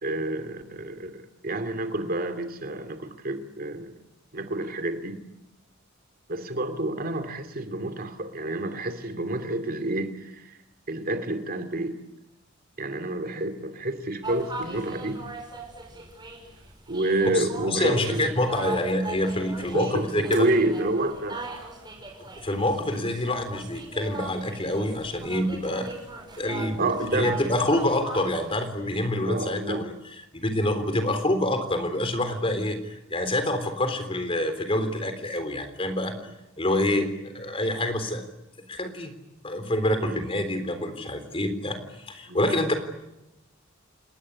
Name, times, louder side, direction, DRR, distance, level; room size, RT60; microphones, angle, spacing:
voice 1, 0.0-4.0 4.3-5.2 6.3-10.6 10.9-12.0 12.8-15.2 16.9-18.3 18.7-18.8 19.7-21.5 26.8-27.4 29.2-29.9 34.8-34.9 36.1-36.3 40.0-40.2 42.3-42.4, right 2 dB, 45° right, 9 dB, 2.7 m, -29 dB
sound 1, 14.2-28.7, right 3 dB, 20° right, 6.3 m, -40 dB
voice 2, 17.3-20.5 22.4-25.9 26.4-26.8 27.1-29.9 30.3-36.1 36.6-38.2 38.7-39.1 39.4-42.7, left 1 dB, 30° left, 9 dB, 3.7 m, -27 dB
29.5 x 19.5 x 9.9 m, 0.92 s
head